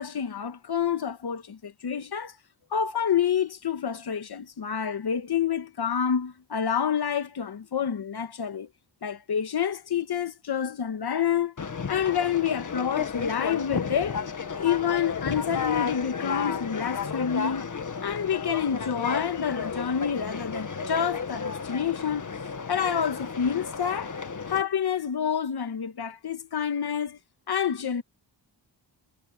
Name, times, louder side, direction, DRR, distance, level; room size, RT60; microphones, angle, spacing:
voice 1, 0.0-2.3 2.7-8.7 9.0-11.5 11.9-14.2 14.6-17.7 18.0-22.3 22.7-24.1 24.4-27.2 27.5-28.0, left 8 dB, 60° left, 1.5 m, -28 dB
Conversation, 11.6-24.6, left 6 dB, 45° left, 1.7 m, -33 dB
wide cardioid pair, 125°, 43 cm